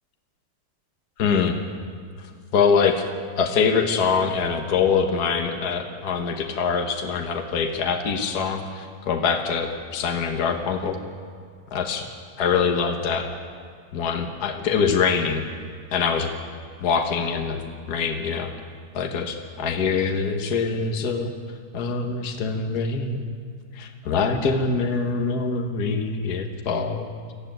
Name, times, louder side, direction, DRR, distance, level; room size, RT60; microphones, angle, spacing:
voice 1, 1.2-1.6 2.5-3.0 3.4-11.0 11.7-12.0 12.4-13.3 13.9-15.4 15.9-16.3 16.8-17.6 17.9-18.5 18.9-21.3 21.7-23.2 23.7-27.1, left 5 dB, 55° left, 4 dB, 1.7 m, -24 dB
20.0 x 14.5 x 9.1 m, 2.1 s
omnidirectional pair, 2.1 m